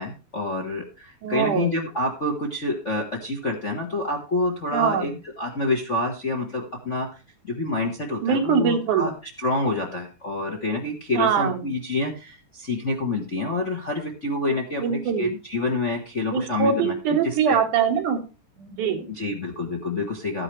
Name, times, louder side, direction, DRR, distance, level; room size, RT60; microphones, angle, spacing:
voice 1, 0.0-5.1 5.4-7.2 7.4-9.1 9.4-17.6 19.1-20.4, left 2 dB, 40° left, 0 dB, 1.0 m, -27 dB
voice 2, 1.2-1.8 4.7-5.1 8.2-9.1 11.1-11.6 14.8-15.3 16.3-18.2 18.6-19.1, right 7 dB, 80° right, 4 dB, 2.9 m, -23 dB
13.0 x 9.8 x 3.3 m, 0.30 s
omnidirectional pair, 3.5 m